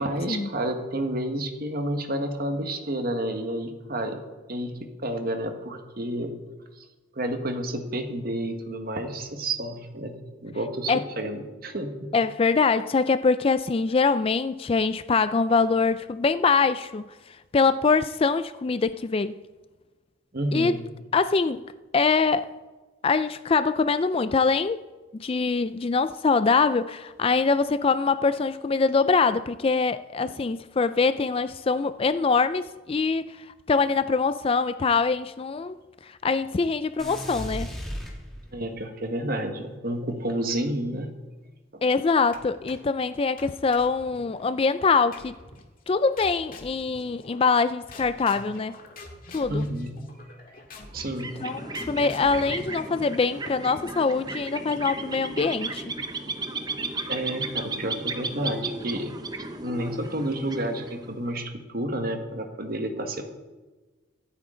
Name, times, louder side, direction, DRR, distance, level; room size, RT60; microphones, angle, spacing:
voice 1, 0.0-4.2 4.5-6.4 7.1-12.1 20.3-20.8 30.2-30.4 38.5-41.1 41.7-41.8 49.5-50.0 50.9-51.4 51.7-51.8 57.1-59.1 59.6-63.2, right 1 dB, 45° right, 1.5 m, -30 dB
voice 2, 12.1-17.1 17.5-19.3 20.5-20.8 21.1-21.6 21.9-22.6 23.0-24.8 25.2-33.4 33.7-35.8 36.0-37.7 41.8-45.3 45.9-48.8 49.3-49.7 51.4-55.9, left 4 dB, 25° left, 0.3 m, -23 dB
sound 1, 37.0-38.8, equal, ahead, 2.6 m, -35 dB
sound 2, 42.3-43.0 43.4-44.5 45.1-45.7 46.2-47.6 47.9-53.6, left 2 dB, 45° left, 1.9 m, -45 dB
sound 3, 50.9-61.3, right 3 dB, 20° right, 0.8 m, -35 dB
24.5 x 8.6 x 3.8 m
head